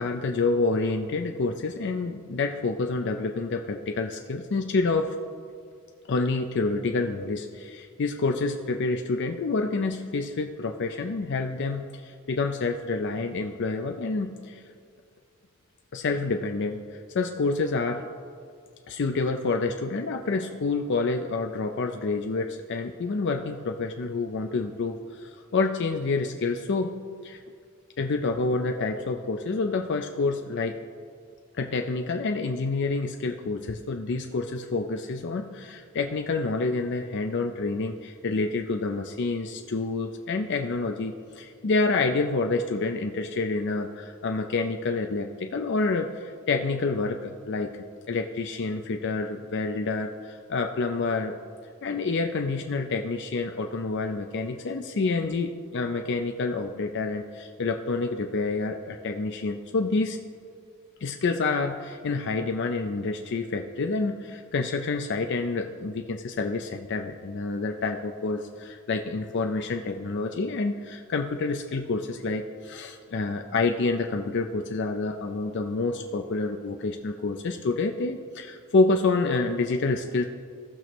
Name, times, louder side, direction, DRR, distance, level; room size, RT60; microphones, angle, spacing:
voice 1, 0.0-5.1 6.1-14.6 15.9-18.1 18.9-26.9 27.2-27.4 28.0-30.8 31.5-47.7 48.1-51.4 51.8-60.2 61.0-80.2, left 3 dB, 55° left, 4 dB, 0.5 m, -28 dB
17.5 x 6.2 x 3.0 m, 2.2 s
head